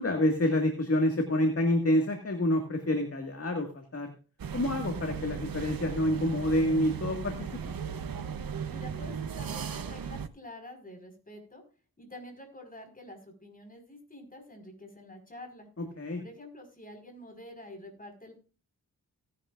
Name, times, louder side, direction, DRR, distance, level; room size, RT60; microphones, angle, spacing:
voice 1, 0.0-4.1 4.5-7.8 15.8-16.2, left 1 dB, 40° left, 4 dB, 1.9 m, -28 dB
sound 1, 4.4-10.3, right 7 dB, 65° right, 0.9 m, -36 dB
voice 2, 8.7-11.6 12.0-15.7 16.2-18.3, left 1 dB, 25° left, 4 dB, 4.8 m, -47 dB
17.5 x 10.5 x 2.5 m, 0.35 s
wide cardioid pair, 95°, 37 cm